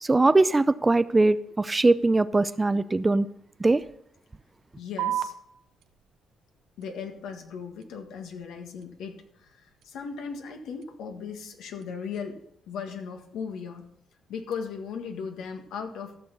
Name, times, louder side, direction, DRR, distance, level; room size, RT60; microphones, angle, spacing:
voice 1, 0.0-3.3 3.6-3.8, right 2 dB, 20° right, 0.5 m, -21 dB
voice 2, 4.8-5.3 6.8-12.4 12.7-13.9 14.3-16.2, left 6 dB, 80° left, 1.7 m, -37 dB
sound 1, 5.0-12.0, right 11 dB, 80° right, 0.6 m, -40 dB
14.5 x 6.3 x 5.4 m
cardioid pair, 90°, 0 cm